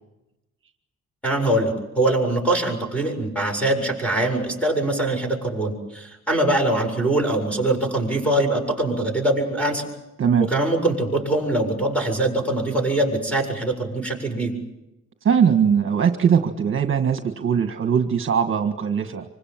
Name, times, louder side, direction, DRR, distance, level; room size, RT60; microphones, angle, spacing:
voice 1, 1.2-9.8 10.4-14.5, right 1 dB, 5° left, 3 dB, 7.6 m, -23 dB
voice 2, 10.2-10.5 15.2-19.2, right 7 dB, 45° right, 6 dB, 1.7 m, -20 dB
26.5 x 25.0 x 7.5 m, 0.95 s
cardioid pair, 145°, 29 cm